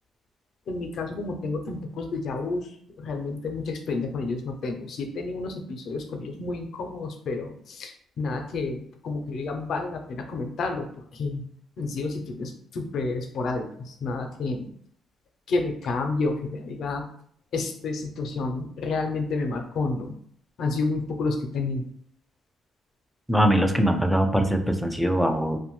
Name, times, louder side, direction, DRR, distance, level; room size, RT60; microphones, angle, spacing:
voice 1, 0.7-11.4 11.8-14.7 15.5-17.0 17.5-20.1 20.6-21.8, left 3 dB, 70° left, 5 dB, 0.4 m, -30 dB
voice 2, 23.3-25.6, equal, ahead, 5 dB, 0.3 m, -22 dB
2.6 x 2.1 x 3.0 m, 0.63 s
cardioid pair, 90°, 0 cm